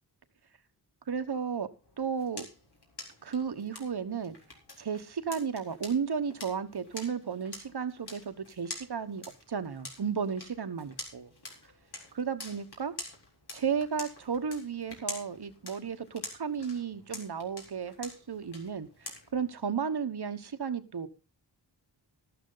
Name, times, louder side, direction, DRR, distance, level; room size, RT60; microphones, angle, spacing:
voice 1, 1.1-1.7 2.0-2.5 3.2-4.3 4.8-11.3 12.2-12.9 13.5-21.1, right 6 dB, 65° right, 1.2 m, -34 dB
sound 1, 1.8-19.5, left 2 dB, 65° left, 4.1 m, -47 dB
13.0 x 12.0 x 3.9 m
wide cardioid pair, 90°, 43 cm